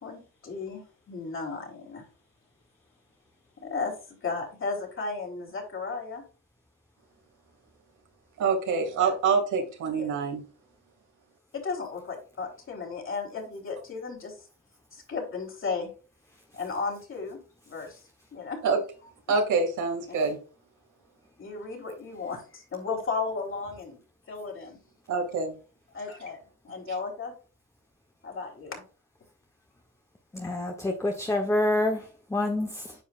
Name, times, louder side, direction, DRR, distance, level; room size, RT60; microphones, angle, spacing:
voice 1, 0.0-2.0 3.6-4.0 4.2-6.2 9.0-9.1 10.0-10.1 11.5-14.3 14.9-15.9 16.5-17.4 17.7-18.0 18.3-18.6 20.1-20.2 21.4-24.0 24.3-24.8 25.9-26.4 26.6-27.3 28.2-28.8, left 4 dB, 45° left, 3.7 m, -34 dB
voice 2, 8.4-10.4 18.6-18.8 19.3-20.4 25.1-25.5, right 5 dB, 75° right, 2.5 m, -26 dB
voice 3, 30.3-32.9, left 1 dB, 10° left, 1.1 m, -27 dB
9.3 x 5.4 x 2.5 m
cardioid pair, 90°, 30 cm